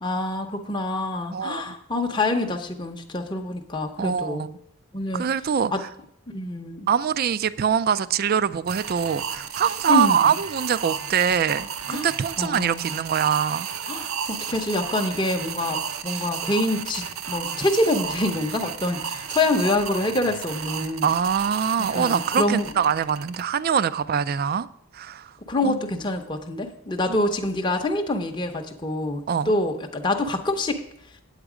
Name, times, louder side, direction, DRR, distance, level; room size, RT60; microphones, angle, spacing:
voice 1, 0.0-4.5 4.9-5.2 5.7-5.8 6.3-6.9 9.9-10.3 11.9-12.1 12.4-13.0 13.9-21.2 21.9-22.7 25.5-30.8, left 2 dB, 20° left, 0.7 m, -26 dB
voice 2, 1.3-1.7 4.0-4.6 5.1-5.9 6.9-13.7 21.0-24.7 24.9-25.3 25.6-25.8 29.3-29.5, right 7 dB, 45° right, 0.3 m, -24 dB
sound 1, 8.7-23.4, right 7 dB, 75° right, 0.7 m, -33 dB
8.9 x 8.1 x 4.9 m
head